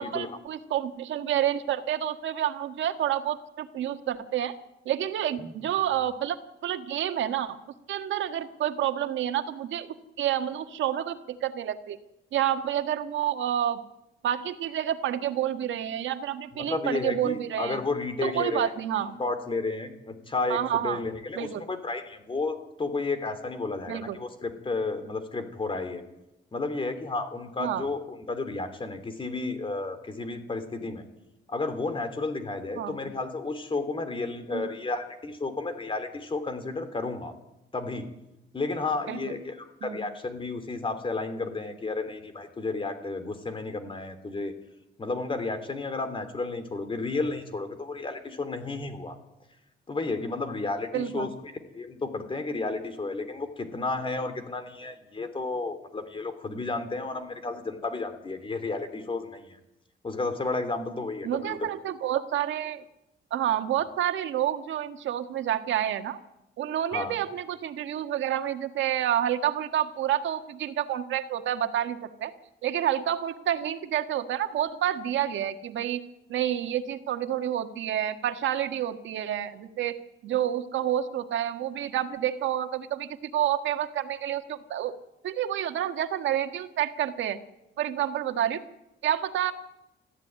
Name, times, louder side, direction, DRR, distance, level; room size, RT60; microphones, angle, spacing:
voice 1, 0.0-4.5 4.9-6.4 6.6-7.6 7.9-9.9 10.2-12.0 12.3-13.8 14.2-17.8 18.2-19.2 20.5-21.0 21.4-21.6 23.9-24.2 27.6-27.9 32.8-33.0 34.5-34.7 39.1-39.2 39.8-40.0 50.9-51.4 61.2-62.8 63.3-66.2 66.6-72.3 72.6-76.0 76.3-80.0 80.2-84.9 85.2-87.4 87.8-88.6 89.0-89.5, right 11 dB, 85° right, 7 dB, 1.6 m, -29 dB
voice 2, 16.6-18.7 19.0-26.0 26.5-31.0 31.5-37.3 37.7-38.1 38.5-39.5 39.8-44.5 45.0-49.1 49.9-51.3 51.7-59.6 60.0-61.7 66.9-67.2, left 3 dB, 25° left, 9 dB, 3.0 m, -32 dB
20.5 x 14.5 x 9.3 m, 0.92 s
cardioid pair, 115°, 19 cm